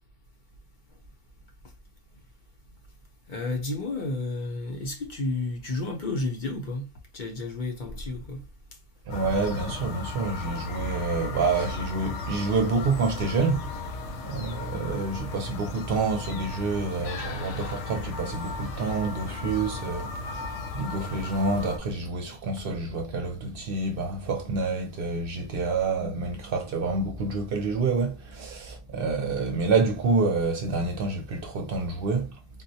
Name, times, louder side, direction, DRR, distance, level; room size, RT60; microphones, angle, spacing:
voice 1, 3.3-6.9 7.1-8.4 9.2-9.4 10.1-10.2 20.2-20.3, left 2 dB, 50° left, 0.7 m, -32 dB
sound 1, 9.1-21.8, left 3 dB, 80° left, 0.9 m, -36 dB
voice 2, 9.1-13.7 14.2-20.5 20.7-32.3, right 3 dB, 60° right, 0.8 m, -28 dB
3.9 x 2.1 x 2.7 m
omnidirectional pair, 1.2 m